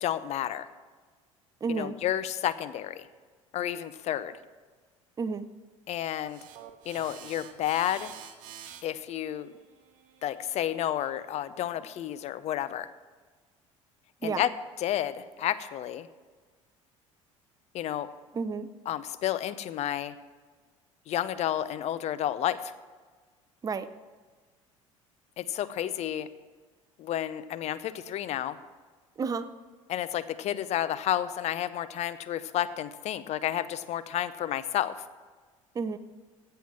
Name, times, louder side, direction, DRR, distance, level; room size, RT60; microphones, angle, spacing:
voice 1, 0.0-0.7 1.7-3.1 3.5-4.3 5.9-6.4 6.9-8.1 8.8-9.5 10.2-12.9 14.2-14.5 14.8-16.1 17.7-18.1 18.9-20.1 21.1-22.7 25.4-26.3 27.0-28.6 29.9-35.0, left 11 dB, 40° left, 15 dB, 0.7 m, -31 dB
voice 2, 1.6-1.9 5.2-5.5 14.2-14.4 18.3-18.7 23.6-23.9 29.2-29.5 35.7-36.0, right 5 dB, 20° right, 12 dB, 0.6 m, -31 dB
sound 1, 6.2-11.4, right 9 dB, 55° right, 1.2 m, -49 dB
15.5 x 5.7 x 7.3 m, 1.4 s
figure-of-eight pair, 60°, 17 cm